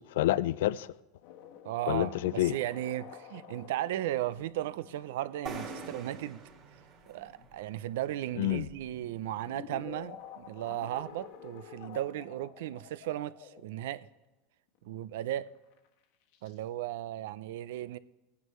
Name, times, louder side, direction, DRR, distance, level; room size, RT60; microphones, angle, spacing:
voice 1, 0.1-0.9 1.9-2.5 8.4-8.7, left 15 dB, 85° left, 0.3 m, -28 dB
sound 1, 1.2-14.2 14.8-14.9 15.4-15.9 16.3-16.6, left 9 dB, 60° left, 1.2 m, -50 dB
voice 2, 1.6-6.4 7.1-14.1 14.8-15.5 16.4-18.0, right 13 dB, 75° right, 0.4 m, -36 dB
sound 2, 5.5-9.1, right 4 dB, 40° right, 2.4 m, -45 dB
16.5 x 9.4 x 3.1 m
supercardioid pair, 165°, 0 cm